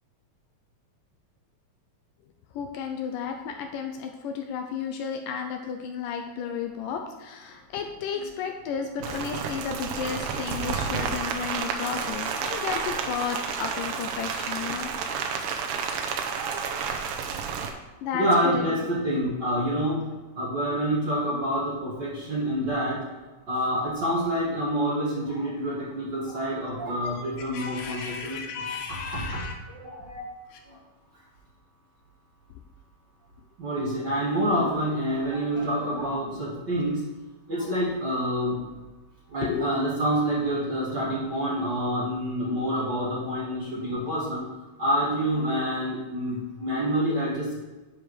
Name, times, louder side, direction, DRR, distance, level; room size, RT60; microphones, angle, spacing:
voice 1, 2.5-14.9 18.0-18.7 20.7-20.8 27.1-27.2 27.5-29.6 30.5-30.6 34.6-34.7 39.4-39.7, left 7 dB, 80° left, 4 dB, 2.1 m, -33 dB
Rain, 9.0-17.7, right 6 dB, 75° right, 2.2 m, -31 dB
voice 2, 18.1-20.0 20.4-23.0 23.5-28.4 29.1-29.2 29.7-30.3 33.6-37.0 37.5-38.6 39.3-44.4 44.8-47.5, equal, 40° right, -6 dB, 1.9 m, -27 dB
10.0 x 5.0 x 4.8 m, 1.2 s
omnidirectional pair, 4.1 m